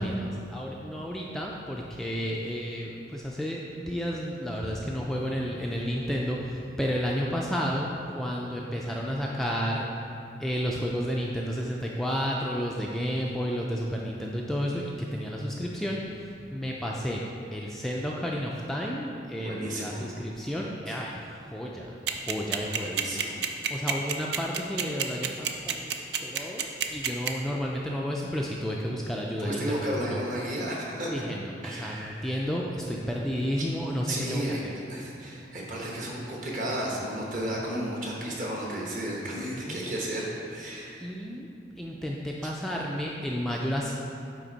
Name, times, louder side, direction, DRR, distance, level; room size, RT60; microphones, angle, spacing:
voice 1, 0.0-9.9 10.4-17.2 17.5-23.3 23.7-30.2 31.1-34.7 39.5-40.0 41.0-41.5 41.8-43.9, equal, ahead, -3 dB, 0.3 m, -32 dB
voice 2, 19.4-20.1 22.8-23.4 29.4-31.1 31.6-32.4 34.1-34.6 34.9-41.1, right 1 dB, 45° right, -3 dB, 1.2 m, -33 dB
sound 1, 22.1-27.3, right 9 dB, 65° right, 0.4 m, -27 dB
9.3 x 3.5 x 4.0 m, 2.5 s
head